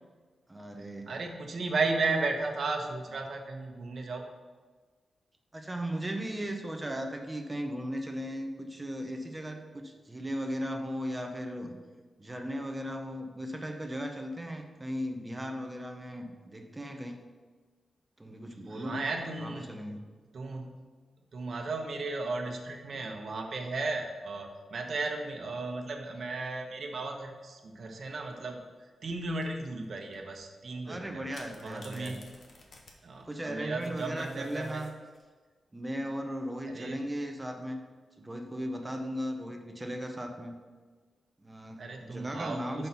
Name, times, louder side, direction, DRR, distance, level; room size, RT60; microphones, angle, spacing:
voice 1, 0.5-1.2 5.5-11.8 12.2-17.2 18.2-19.1 19.4-20.1 30.8-32.1 33.3-35.0 35.7-37.8 38.2-40.5 41.4-42.9, equal, 15° right, 5 dB, 0.8 m, -37 dB
voice 2, 1.1-4.2 18.7-19.7 20.3-20.7 21.3-28.6 29.0-31.2 31.6-32.3 33.0-34.8 36.7-37.0 41.8-42.9, right 3 dB, 55° right, 3 dB, 1.0 m, -35 dB
sound 1, 28.1-28.6 29.4-29.9 30.1-30.4 31.3-35.3 36.9-37.4, left 2 dB, 55° left, 1.1 m, -55 dB
5.9 x 5.5 x 5.7 m, 1.4 s
wide cardioid pair, 120°, 0 cm